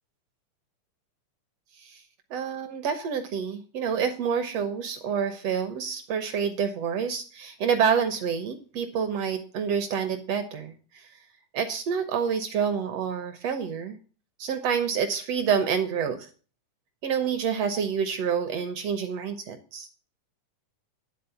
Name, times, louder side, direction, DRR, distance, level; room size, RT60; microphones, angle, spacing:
voice 1, 2.3-10.7 11.5-14.0 14.4-16.3 17.0-19.9, right 7 dB, 70° right, 8 dB, 1.6 m, -28 dB
10.5 x 4.1 x 6.9 m, 0.38 s
omnidirectional pair, 3.6 m